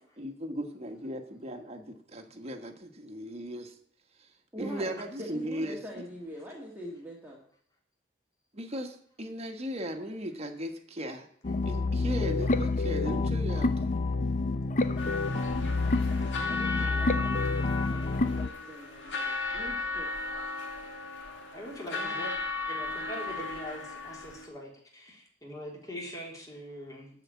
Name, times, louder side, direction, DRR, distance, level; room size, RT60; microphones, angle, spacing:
voice 1, 0.2-3.7 4.6-5.8 8.5-11.3 11.7-13.7 21.9-22.1, equal, 35° right, 4 dB, 1.4 m, -37 dB
voice 2, 4.5-7.4 12.4-12.5 15.0-20.1, equal, 10° right, -2 dB, 1.7 m, -45 dB
sound 1, 11.4-18.5, left 3 dB, 40° left, 0.6 m, -28 dB
sound 2, 15.0-24.5, left 3 dB, 80° left, 2.2 m, -36 dB
voice 3, 21.5-22.3 22.7-27.1, equal, 20° left, -1 dB, 3.3 m, -42 dB
13.0 x 5.2 x 8.6 m, 0.62 s
head